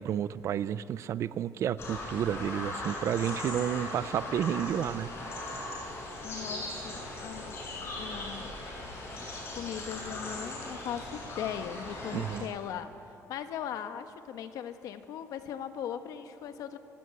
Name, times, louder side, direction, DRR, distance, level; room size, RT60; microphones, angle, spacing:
voice 1, 0.0-5.1 12.1-12.5, right 9 dB, 50° right, 16 dB, 0.7 m, -31 dB
sound 1, 1.8-12.4, left 2 dB, 40° left, 6.7 m, -39 dB
voice 2, 6.2-7.6 7.9-8.5 9.5-16.8, left 9 dB, 70° left, 9 dB, 1.4 m, -39 dB
25.5 x 16.5 x 9.6 m, 2.8 s
cardioid pair, 150°, 6 cm